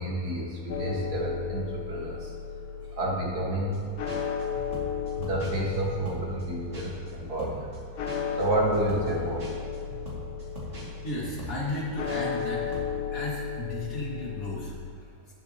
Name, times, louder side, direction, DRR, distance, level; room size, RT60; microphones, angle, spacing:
voice 1, 0.0-2.4 2.9-3.8 5.1-7.8 8.3-9.6, right 2 dB, 85° right, -3 dB, 2.4 m, -30 dB
sound 1, 0.7-14.7, left 7 dB, 75° left, 1.3 m, -35 dB
sound 2, 3.7-3.8 4.1-7.1 7.4-12.5 12.7-12.9, equal, 45° right, 2.7 m, -42 dB
voice 2, 10.8-12.8 13.1-15.3, left 2 dB, 60° left, -6 dB, 2.8 m, -35 dB
18.0 x 7.1 x 3.0 m, 2.5 s
omnidirectional pair, 1.6 m